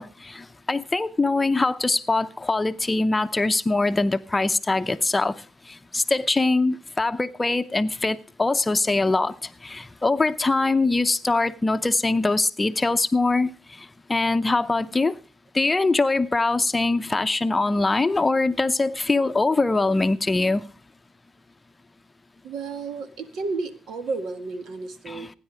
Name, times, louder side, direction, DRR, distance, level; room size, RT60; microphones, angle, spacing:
voice 1, 0.0-13.5 13.8-15.2 15.5-20.7 25.1-25.3, left 3 dB, 20° left, 0.7 m, -23 dB
voice 2, 22.4-25.3, right 4 dB, 75° right, 1.6 m, -32 dB
16.0 x 9.9 x 5.0 m
cardioid pair, 90°, 0 cm